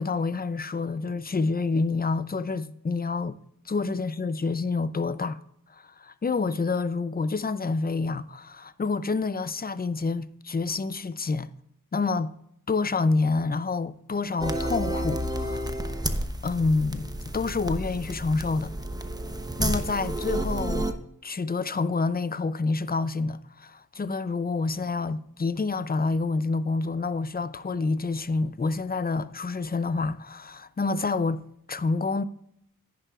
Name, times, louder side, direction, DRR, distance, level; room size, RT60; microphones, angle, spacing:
voice 1, 0.0-3.4 3.7-5.4 5.7-11.5 11.9-12.3 12.7-15.8 16.4-18.7 19.6-20.9 21.2-31.4 31.7-32.2, left 3 dB, 30° left, 0.5 m, -28 dB
first concrete piece of music, 14.4-20.9, right 1 dB, 10° right, 0.8 m, -30 dB
10.5 x 9.9 x 2.4 m
wide cardioid pair, 80°, 33 cm